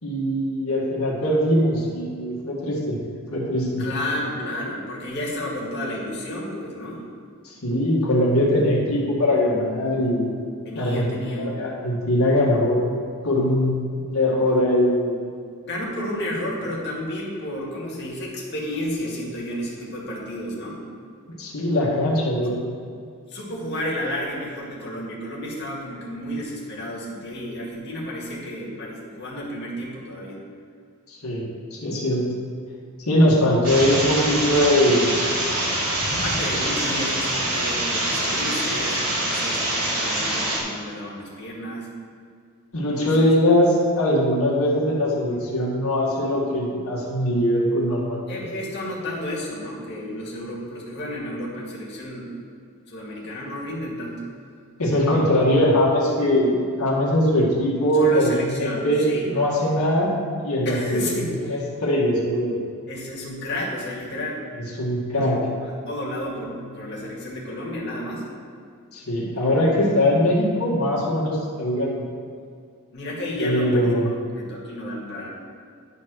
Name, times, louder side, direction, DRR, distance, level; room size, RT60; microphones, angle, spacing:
voice 1, 0.0-3.0 3.3-3.8 7.4-10.3 10.7-15.2 21.3-22.5 31.1-32.2 33.1-35.1 42.7-48.3 54.8-61.0 61.5-62.6 64.8-65.4 68.9-72.0 73.4-74.0, left 1 dB, 80° left, -4 dB, 1.9 m, -21 dB
voice 2, 3.8-7.0 10.7-11.6 15.6-20.8 22.4-22.6 23.3-30.4 36.1-41.9 43.0-43.3 48.3-52.3 52.9-54.2 57.9-59.3 60.7-61.6 62.9-64.5 65.2-68.3 72.9-74.1 74.4-75.3, left 1 dB, 50° left, -4 dB, 2.1 m, -31 dB
sound 1, 33.6-40.6, right 1 dB, 80° right, 2.5 m, -25 dB
11.0 x 4.3 x 6.2 m, 2.2 s
head